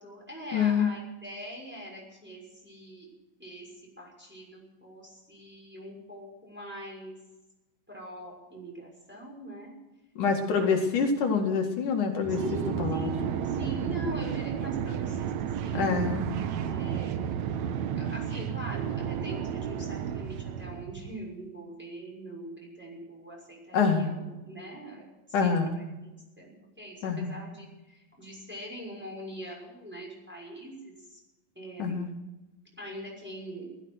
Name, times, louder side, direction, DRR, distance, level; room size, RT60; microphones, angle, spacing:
voice 1, 0.0-3.1 3.4-3.7 4.0-7.2 7.9-9.8 10.6-11.0 12.3-15.9 16.6-17.3 18.0-31.2 31.5-32.0 32.8-33.7, right 1 dB, 5° right, -3 dB, 6.1 m, -42 dB
voice 2, 0.5-0.9 10.2-12.4 12.8-13.1 15.7-16.3 23.7-24.1 25.3-25.7 27.0-27.3 31.8-32.1, left 5 dB, 65° left, 3 dB, 3.5 m, -26 dB
sound 1, 12.2-21.2, right 8 dB, 70° right, 1.9 m, -32 dB
16.0 x 14.0 x 6.5 m, 1.0 s
omnidirectional pair, 4.0 m